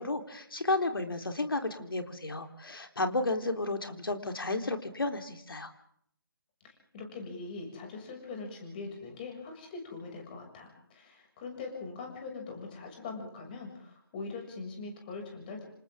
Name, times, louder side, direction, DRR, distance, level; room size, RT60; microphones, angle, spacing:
voice 1, 0.0-5.7, left 2 dB, 65° left, 6 dB, 3.9 m, -32 dB
voice 2, 6.6-15.6, left 4 dB, 25° left, 3 dB, 6.7 m, -42 dB
28.0 x 27.5 x 3.8 m, 0.66 s
figure-of-eight pair, 155°, 13 cm